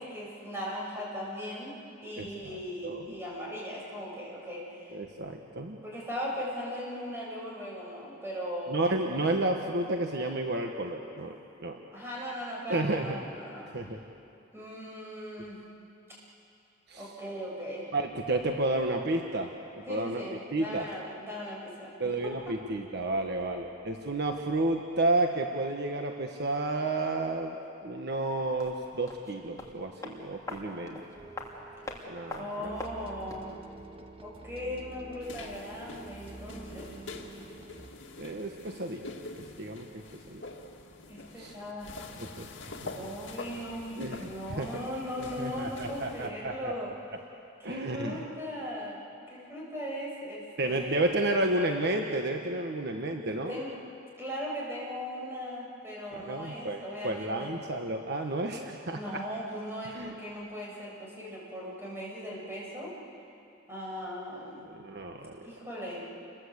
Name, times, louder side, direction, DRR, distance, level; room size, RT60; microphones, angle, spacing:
voice 1, 0.0-1.8 2.0-5.0 5.8-9.0 11.9-13.7 14.5-15.6 17.0-17.9 19.9-22.6 32.4-33.5 34.2-36.9 41.1-41.9 42.9-46.9 47.6-49.0 49.3-51.2 53.3-53.8 54.2-57.6 58.9-63.0 63.7-64.7 65.4-66.2, equal, 15° right, -4 dB, 7.7 m, -38 dB
voice 2, 2.2-2.5 2.8-3.0 4.9-5.8 8.7-11.8 12.7-13.1 13.7-14.0 16.9-17.1 17.9-20.2 20.5-20.9 22.0-27.6 27.8-31.0 32.1-32.8 38.2-39.0 39.6-40.4 41.4-41.5 42.2-42.5 42.8-42.9 44.0-44.7 45.2-46.7 47.6-48.2 50.6-53.6 56.1-59.0 59.9-60.1 64.7-65.4, right 2 dB, 60° right, 3 dB, 1.5 m, -31 dB
sound 1, 28.6-33.6 33.8-33.9, left 2 dB, 20° left, 3.0 m, -43 dB
sound 2, 31.1-37.9, right 2 dB, 30° right, 1.5 m, -48 dB
sound 3, 35.2-46.3, left 3 dB, 65° left, 2.3 m, -45 dB
29.5 x 22.0 x 8.2 m, 2.6 s
head